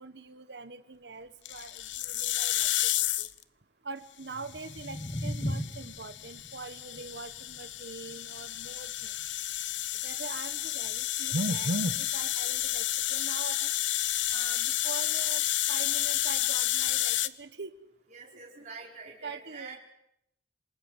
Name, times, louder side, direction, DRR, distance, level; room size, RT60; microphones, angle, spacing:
voice 1, 0.0-2.9 3.2-3.3 3.8-9.1 10.0-13.7 14.3-17.7 19.2-19.8, right 2 dB, 65° right, 10 dB, 1.3 m, -40 dB
sound 1, 1.4-3.4 4.5-17.3, left 13 dB, 85° left, 0.9 m, -31 dB
sound 2, 4.2-10.4, equal, 30° left, 5.1 m, -40 dB
voice 2, 18.1-19.8, right 4 dB, 40° right, -3 dB, 4.9 m, -45 dB
27.5 x 19.5 x 8.2 m, 0.78 s
head